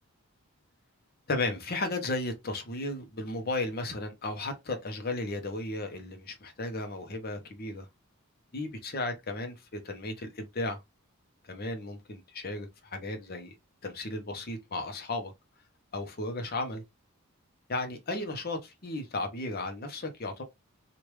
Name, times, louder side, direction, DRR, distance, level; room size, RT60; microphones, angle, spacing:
voice 1, 1.3-7.9 8.5-10.8 11.4-13.5 13.8-15.3 15.9-16.8 17.7-20.4, left 2 dB, 45° left, 0.7 m, -34 dB
3.2 x 2.4 x 3.0 m
head